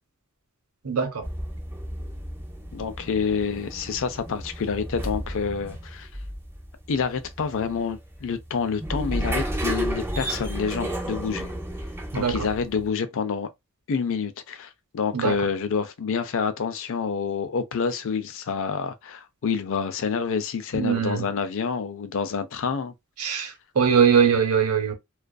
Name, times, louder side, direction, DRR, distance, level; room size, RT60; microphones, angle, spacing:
voice 1, 0.8-1.3 12.1-12.5 15.1-15.4 20.7-21.2 23.2-24.9, right 7 dB, 80° right, 0.8 m, -22 dB
sound 1, 1.2-12.9, right 1 dB, 10° right, 0.6 m, -33 dB
voice 2, 2.7-6.1 6.9-11.5 12.1-13.5 13.9-22.9, left 6 dB, 60° left, 0.4 m, -28 dB
2.4 x 2.4 x 2.2 m
head